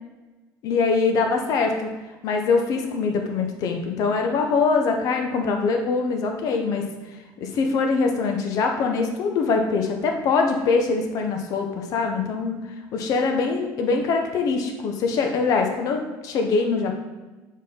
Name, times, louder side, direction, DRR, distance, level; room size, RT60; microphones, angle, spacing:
voice 1, 0.6-1.9 2.2-6.9 7.4-12.6 12.9-16.9, left 4 dB, 50° left, 3 dB, 0.8 m, -23 dB
7.2 x 4.3 x 3.7 m, 1.1 s
cardioid pair, 155°, 8 cm